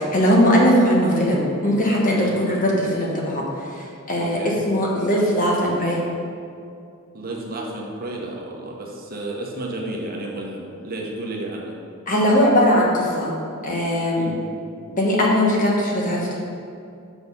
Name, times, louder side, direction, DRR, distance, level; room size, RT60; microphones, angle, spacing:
voice 1, 0.0-3.4 3.7-6.0 12.1-13.3 13.6-14.3 14.9-16.4, equal, 35° left, -3 dB, 1.2 m, -19 dB
voice 2, 4.2-4.6 7.1-11.7 14.2-14.4, right 2 dB, 45° right, -1 dB, 1.0 m, -32 dB
6.2 x 5.1 x 5.4 m, 2.5 s
head